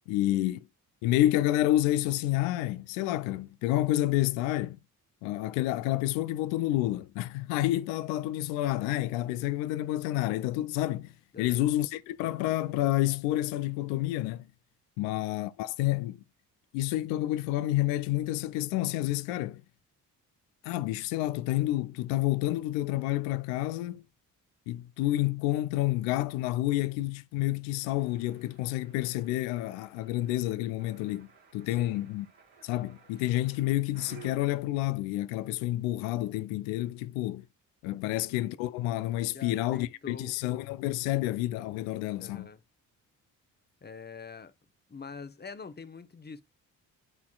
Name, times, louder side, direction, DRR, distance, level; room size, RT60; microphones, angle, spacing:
voice 1, 0.1-0.6 1.0-4.8 5.2-14.5 15.0-16.2 16.7-19.6 20.6-24.0 24.7-31.3 31.5-32.3 32.6-37.4 37.8-42.5, left 15 dB, 75° left, 0.5 m, -29 dB
voice 2, 11.3-11.7 15.0-15.2 31.6-32.0 38.0-38.4 39.3-40.4 41.2-41.3 42.2-42.6 43.8-44.5 44.9-46.4, left 5 dB, 20° left, 0.9 m, -45 dB
sound 1, 27.8-34.3, right 7 dB, 55° right, 1.8 m, -56 dB
11.0 x 4.1 x 2.3 m
hypercardioid pair, 40°, 45 cm